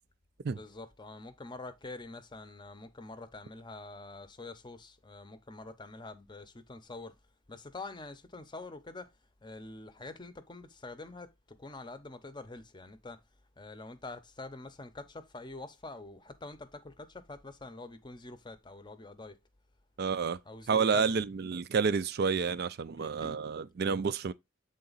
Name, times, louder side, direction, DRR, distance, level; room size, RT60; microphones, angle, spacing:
voice 1, 0.5-7.2 7.5-9.1 9.4-13.2 13.6-19.4 20.5-21.2 23.0-23.4, left 2 dB, 20° left, 0.7 m, -46 dB
voice 2, 20.0-20.4 20.7-24.3, right 5 dB, 50° right, 0.4 m, -29 dB
8.0 x 3.8 x 3.9 m
head